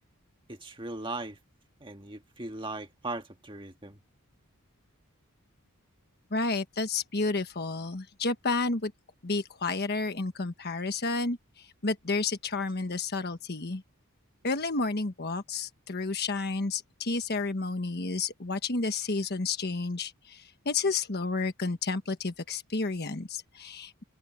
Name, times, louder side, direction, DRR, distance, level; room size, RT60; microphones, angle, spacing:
voice 1, 0.5-1.4 1.8-4.0, right 2 dB, 25° right, 1.7 m, -38 dB
voice 2, 6.3-8.9 9.2-13.8 14.4-24.0, left 3 dB, 50° left, 1.3 m, -31 dB
open air
head